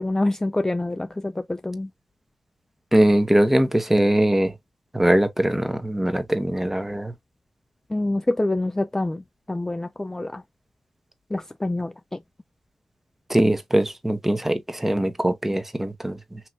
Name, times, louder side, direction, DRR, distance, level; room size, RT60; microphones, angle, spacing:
voice 1, 0.0-1.9 7.9-9.2 9.5-10.4 11.3-11.9, left 2 dB, 20° left, 0.4 m, -26 dB
voice 2, 2.9-4.5 4.9-7.1 13.3-16.4, right 1 dB, 10° right, 1.0 m, -21 dB
4.3 x 3.0 x 2.5 m
supercardioid pair, 40°, 2 cm